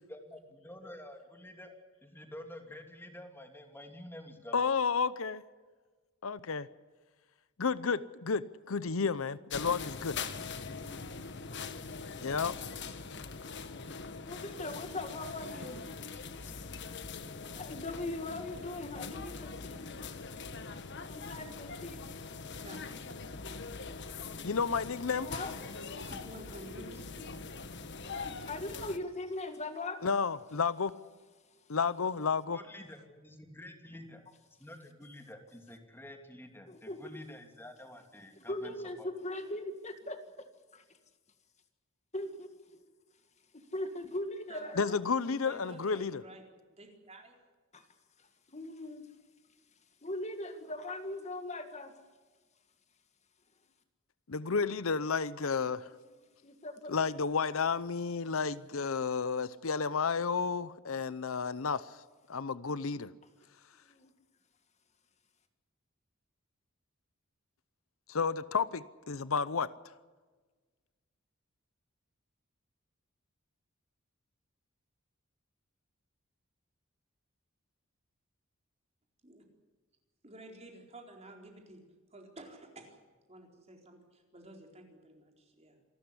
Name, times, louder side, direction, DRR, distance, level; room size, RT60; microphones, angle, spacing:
voice 1, 0.1-4.7 32.5-34.2 34.6-39.1, left 1 dB, 10° left, 5 dB, 2.8 m, -49 dB
voice 2, 4.5-5.4 6.2-6.7 7.6-10.2 12.2-12.6 24.4-25.3 30.0-30.9 31.7-32.6 44.8-46.2 54.3-55.9 56.9-62.0 62.3-63.1 68.1-69.7, left 5 dB, 75° left, 16 dB, 0.8 m, -31 dB
sound 1, 9.5-29.0, left 4 dB, 55° left, 1.4 m, -42 dB
voice 3, 14.1-15.8 16.4-16.5 17.5-20.1 21.0-22.0 25.2-25.5 28.0-30.0 36.7-37.2 38.4-40.2 40.7-40.8 42.1-42.8 43.5-45.0 47.7-47.9 48.5-49.1 50.0-52.0 56.4-56.9 63.9-64.1, left 2 dB, 35° left, 7 dB, 1.9 m, -40 dB
voice 4, 22.6-22.9 25.9-27.3 44.5-45.0 45.4-46.4 46.7-47.3 79.2-79.4 80.2-81.8 82.1-83.0 83.3-85.8, right 1 dB, 30° right, 2 dB, 4.3 m, -51 dB
27.0 x 13.0 x 10.0 m, 1.4 s
head